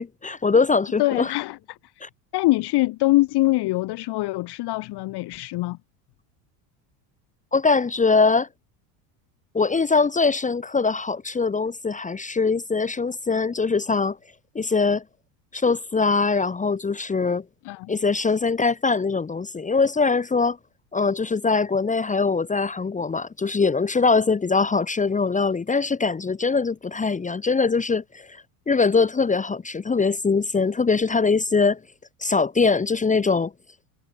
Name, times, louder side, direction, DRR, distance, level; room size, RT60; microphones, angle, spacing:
voice 1, 0.0-1.3 2.0-2.1 7.5-8.5 9.5-14.2 14.5-15.0 15.5-17.4 17.9-20.6 20.9-31.8 32.2-33.5, left 4 dB, 15° left, 1.4 m, -22 dB
voice 2, 1.0-1.8 2.3-5.8 17.6-17.9, left 19 dB, 50° left, 2.0 m, -23 dB
supercardioid pair, 115°, 49 cm